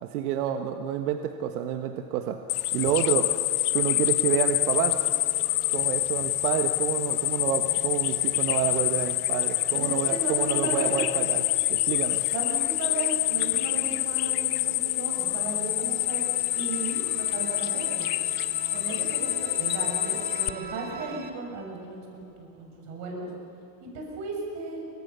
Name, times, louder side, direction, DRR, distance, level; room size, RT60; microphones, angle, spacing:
voice 1, 0.0-2.4 2.7-3.3 3.7-5.0 5.7-12.2, right 10 dB, 80° right, 6 dB, 1.5 m, -29 dB
sound 1, 2.5-20.5, left 17 dB, 80° left, 1.2 m, -26 dB
sound 2, 3.9-21.3, right 5 dB, 20° right, 1.6 m, -45 dB
voice 2, 9.7-11.0 12.3-16.3 16.5-18.1 18.7-23.3 23.9-24.8, right 3 dB, 40° right, 0 dB, 6.3 m, -35 dB
sound 3, 14.9-15.0 15.4-15.9 17.5-17.6 18.1-18.4 19.5-19.9, left 10 dB, 35° left, 3.0 m, -45 dB
27.0 x 25.0 x 6.9 m, 2.8 s
supercardioid pair, 170°, 44 cm